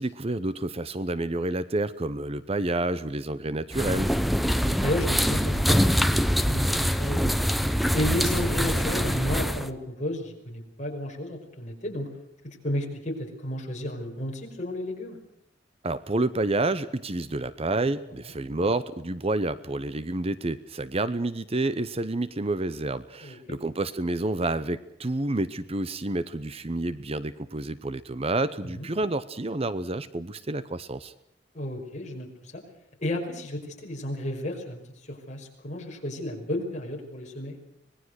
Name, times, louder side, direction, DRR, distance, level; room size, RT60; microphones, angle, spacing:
voice 1, 0.0-4.1 15.8-31.1, right 2 dB, 30° right, 14 dB, 0.8 m, -29 dB
sound 1, 3.7-9.7, equal, ahead, 1.0 m, -24 dB
voice 2, 4.6-7.4 7.9-12.1 12.4-15.2 23.2-23.4 28.6-28.9 31.5-32.6 33.0-37.6, left 1 dB, 40° left, 1 dB, 5.5 m, -32 dB
25.5 x 20.0 x 6.4 m, 0.77 s
head